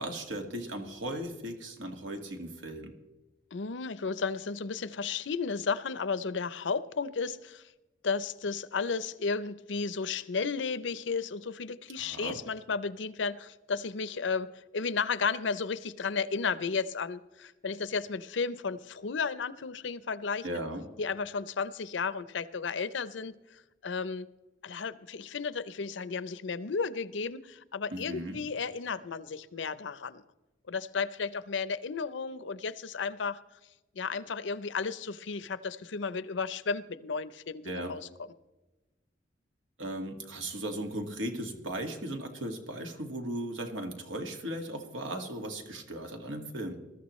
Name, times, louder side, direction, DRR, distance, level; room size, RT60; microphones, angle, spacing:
voice 1, 0.0-2.9 12.0-12.4 20.4-20.8 27.9-28.4 37.7-38.0 39.8-46.8, right 1 dB, 80° right, 4 dB, 1.9 m, -37 dB
voice 2, 3.5-7.7 8.0-20.5 21.0-24.3 24.6-30.2 30.7-33.4 33.9-38.1, left 5 dB, 70° left, 16 dB, 0.6 m, -33 dB
21.5 x 13.5 x 3.1 m, 1.1 s
head